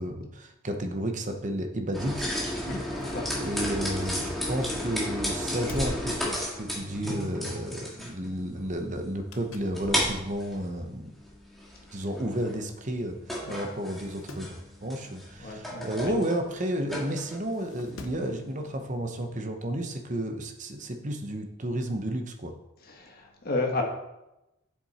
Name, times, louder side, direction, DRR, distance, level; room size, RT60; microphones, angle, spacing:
voice 1, 0.0-2.3 3.3-11.1 11.9-13.2 13.5-22.5, right 1 dB, 35° right, 5 dB, 0.9 m, -32 dB
sound 1, 1.9-18.9, equal, ahead, 1.8 m, -34 dB
voice 2, 2.6-3.2 6.9-7.3 11.9-12.0 13.5-13.6 15.4-16.1 22.9-23.8, left 2 dB, 45° left, 1 dB, 1.5 m, -33 dB
sound 2, 2.8-4.8 5.2-7.1 7.5-7.7 9.0-9.8 10.3-10.4 11.3-11.4 11.6-11.7 11.9-12.0 12.8-13.0 13.3-13.4 13.8-14.5 16.4-16.5 17.5-18.3 19.6-19.7, left 2 dB, 70° left, 0.8 m, -45 dB
7.7 x 7.0 x 4.3 m, 0.93 s
head